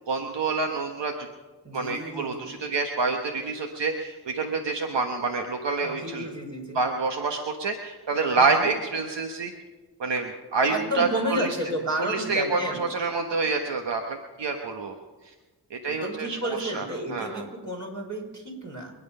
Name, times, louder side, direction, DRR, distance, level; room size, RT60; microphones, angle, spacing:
voice 1, 0.1-1.1 1.7-6.3 6.7-9.5 10.0-11.6 12.0-14.9 15.7-16.8 17.1-17.4, right 4 dB, 80° right, 3 dB, 1.3 m, -27 dB
voice 2, 1.6-2.5 5.8-6.8 8.4-8.7 10.7-12.8 15.8-18.9, equal, 45° right, 0 dB, 5.3 m, -32 dB
25.0 x 9.4 x 5.5 m, 1.2 s
cardioid pair, 45°, 42 cm